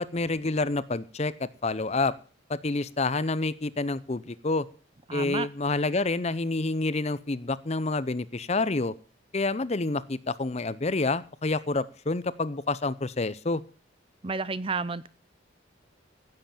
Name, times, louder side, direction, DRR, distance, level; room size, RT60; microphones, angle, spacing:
voice 1, 0.0-2.1 2.5-4.7 5.1-8.9 9.3-13.6, left 3 dB, 30° left, 17 dB, 0.6 m, -28 dB
voice 2, 5.1-5.5 14.2-15.1, right 4 dB, 25° right, 17 dB, 0.6 m, -31 dB
16.0 x 7.9 x 7.2 m, 0.38 s
head